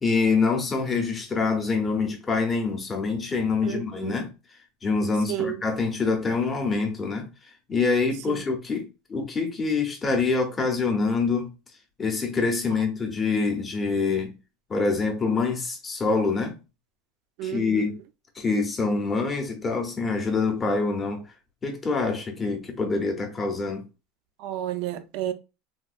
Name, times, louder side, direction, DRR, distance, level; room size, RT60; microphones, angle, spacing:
voice 1, 0.0-4.3 4.8-7.3 7.7-11.5 12.0-14.3 14.7-16.5 17.4-18.0 18.4-21.2 21.6-23.9, left 4 dB, 15° left, 0.6 m, -25 dB
voice 2, 3.6-4.2 5.3-5.6 8.3-8.4 17.4-17.9 24.4-25.3, right 12 dB, 50° right, 0.4 m, -31 dB
3.5 x 2.3 x 2.4 m
supercardioid pair, 175°, 0 cm